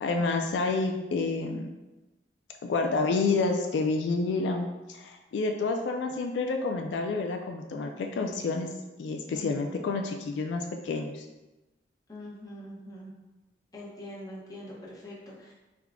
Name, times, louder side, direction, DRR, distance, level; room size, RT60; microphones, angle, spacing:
voice 1, 0.0-1.7 2.6-8.7 9.0-11.3, left 3 dB, 85° left, 3 dB, 0.3 m, -29 dB
voice 2, 9.3-9.8 12.1-13.1 13.7-15.5, left 1 dB, 20° left, -5 dB, 0.8 m, -43 dB
3.5 x 2.2 x 3.4 m, 1.1 s
head